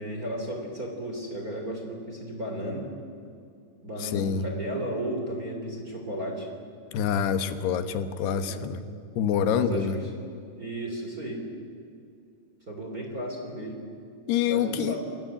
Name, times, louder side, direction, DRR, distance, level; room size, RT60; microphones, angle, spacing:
voice 1, 0.0-2.9 3.8-6.5 8.4-8.7 9.5-10.1 10.6-11.4 12.7-13.8 14.5-15.1, right 1 dB, 25° right, 1 dB, 3.3 m, -34 dB
voice 2, 4.0-4.5 6.9-8.8 9.2-10.0 14.3-15.0, left 8 dB, 80° left, 11 dB, 3.4 m, -26 dB
28.0 x 20.0 x 9.0 m, 2.5 s
omnidirectional pair, 4.6 m